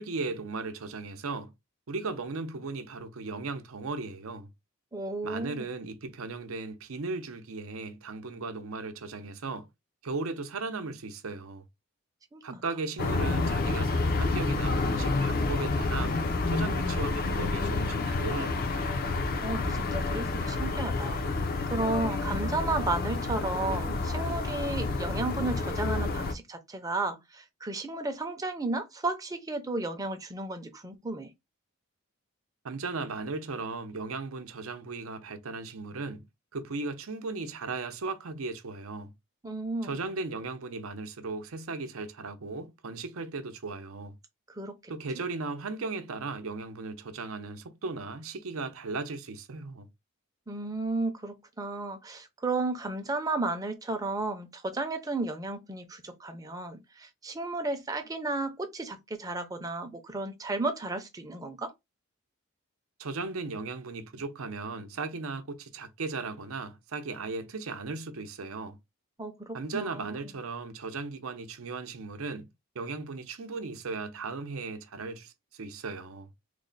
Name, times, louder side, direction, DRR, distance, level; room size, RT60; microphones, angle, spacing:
voice 1, 0.0-1.5 1.9-4.5 5.2-9.7 10.0-11.7 12.4-16.2 16.5-18.8 32.6-36.3 36.5-39.1 39.8-44.2 44.9-49.9 63.0-68.8 69.5-72.5 72.7-76.3, right 3 dB, 80° right, 0.6 m, -37 dB
voice 2, 4.9-5.7 12.3-12.6 19.4-21.4 21.7-31.3 39.4-40.0 44.5-44.9 50.5-61.7 69.2-70.2, right 2 dB, 15° right, 0.5 m, -33 dB
sound 1, 13.0-26.3, left 3 dB, 45° left, 0.5 m, -29 dB
3.1 x 2.1 x 3.9 m
head